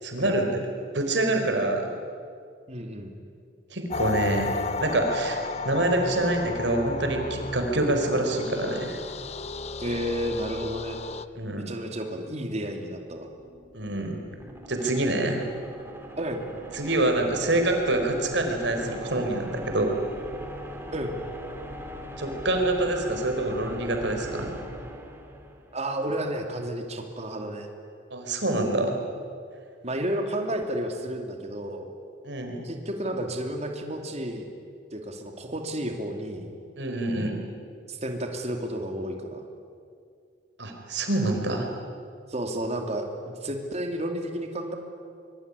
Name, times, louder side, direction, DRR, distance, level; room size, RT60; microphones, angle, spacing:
voice 1, 0.0-0.6 0.9-1.9 3.7-9.0 11.3-11.7 13.7-14.2 14.7-15.4 16.7-20.0 22.2-24.5 28.1-29.0 32.2-32.6 36.8-37.4 40.6-41.7, right 2 dB, 65° right, 3 dB, 4.7 m, -26 dB
voice 2, 2.7-3.1 9.8-11.0 11.6-13.3 16.1-16.4 20.9-21.2 25.7-27.7 29.8-31.9 32.6-34.5 34.9-36.6 37.9-39.4 42.3-44.8, right 1 dB, 35° right, 4 dB, 3.0 m, -31 dB
sound 1, 3.9-11.2, left 4 dB, 35° left, 0.7 m, -34 dB
sound 2, 13.0-25.9, equal, 10° right, 2.9 m, -41 dB
25.0 x 23.5 x 9.9 m, 2.3 s
head